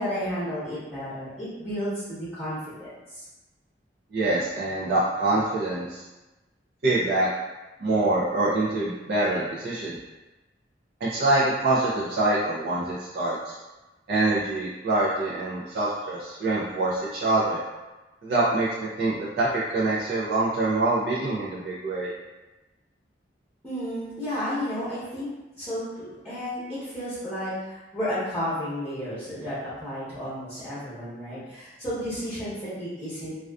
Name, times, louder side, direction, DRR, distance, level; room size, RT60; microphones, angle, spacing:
voice 1, 0.0-3.2 23.6-25.3 25.6-33.3, equal, 5° left, -13 dB, 0.9 m, -32 dB
voice 2, 4.1-6.0 6.8-7.3 7.8-10.0 11.0-13.5 14.1-17.6 18.2-18.7 19.0-19.5 19.7-22.1, right 2 dB, 60° right, -8 dB, 0.4 m, -25 dB
2.3 x 2.3 x 2.3 m, 1.1 s
head